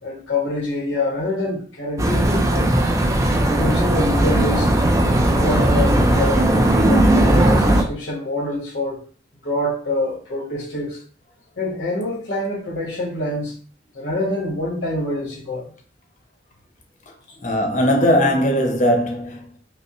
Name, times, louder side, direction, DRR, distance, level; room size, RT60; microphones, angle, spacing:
voice 1, 0.0-2.7 3.5-4.8 5.3-9.0 9.4-11.0 11.6-13.6 13.9-15.7, left 1 dB, 80° left, 1.2 m, -26 dB
sound 1, 2.0-7.8, right 1 dB, 15° right, 0.4 m, -17 dB
voice 2, 17.4-19.6, equal, 45° left, 0.8 m, -19 dB
5.0 x 2.1 x 2.9 m
head